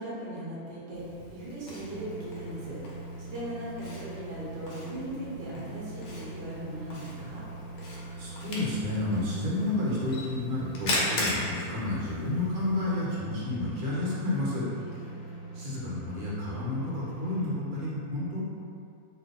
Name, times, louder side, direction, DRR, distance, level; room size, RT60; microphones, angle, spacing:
voice 1, 0.0-2.8 3.2-7.4 14.8-15.2, right 1 dB, 45° right, -8 dB, 0.9 m, -39 dB
Camera, 0.9-12.9, left 1 dB, 90° left, 1.2 m, -38 dB
sound 1, 1.9-17.5, right 3 dB, 65° left, 0.9 m, -42 dB
voice 2, 7.9-14.7 15.5-18.4, left 2 dB, 80° right, -7 dB, 1.2 m, -31 dB
2.6 x 2.6 x 3.7 m, 2.5 s
omnidirectional pair, 1.5 m